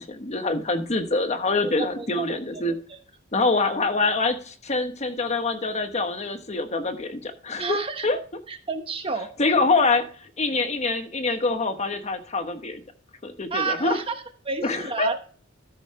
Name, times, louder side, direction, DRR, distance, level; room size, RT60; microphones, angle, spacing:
voice 1, 0.0-2.8 3.3-7.8 8.0-8.2 9.4-12.8 13.2-14.0 14.6-15.2, left 3 dB, 35° left, 7 dB, 1.1 m, -25 dB
voice 2, 1.6-2.3 2.5-2.7 7.6-8.1 8.5-9.3 13.5-15.2, right 4 dB, 30° right, 6 dB, 1.1 m, -30 dB
13.5 x 6.3 x 3.2 m, 0.42 s
head